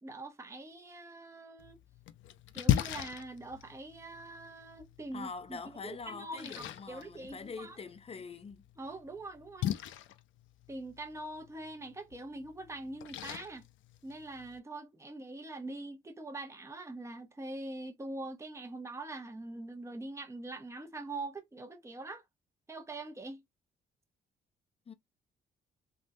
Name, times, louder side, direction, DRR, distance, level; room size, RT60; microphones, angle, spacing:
voice 1, 0.0-1.8 2.5-7.8 8.8-9.7 10.7-13.6 14.0-22.2 22.7-23.4, right 2 dB, 15° right, 0.8 m, -43 dB
Splash splatter, 1.6-14.6, left 12 dB, 75° left, 0.5 m, -39 dB
voice 2, 5.1-8.6 24.9-25.0, left 5 dB, 30° left, 0.6 m, -44 dB
3.5 x 2.3 x 2.7 m
cardioid pair, 90°, 20 cm